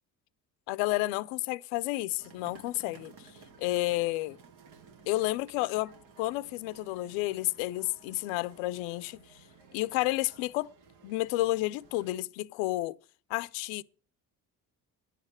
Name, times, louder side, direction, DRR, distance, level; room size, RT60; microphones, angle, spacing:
voice 1, 0.7-3.1 3.6-4.4 5.1-9.2 9.7-10.7 11.0-13.0 13.3-13.8, left 19 dB, 85° left, 0.5 m, -31 dB
sound 1, 2.2-12.2, right 5 dB, 80° right, 1.4 m, -56 dB
10.0 x 6.6 x 7.5 m
hypercardioid pair, 50°, 47 cm